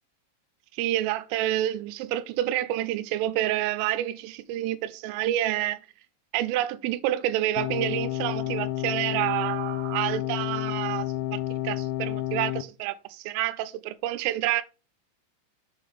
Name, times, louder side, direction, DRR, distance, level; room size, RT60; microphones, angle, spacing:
voice 1, 0.7-5.8 6.3-14.6, right 13 dB, 85° right, 3.2 m, -28 dB
sound 1, 7.6-12.6, left 14 dB, 85° left, 3.1 m, -30 dB
7.0 x 3.6 x 5.5 m
omnidirectional pair, 5.7 m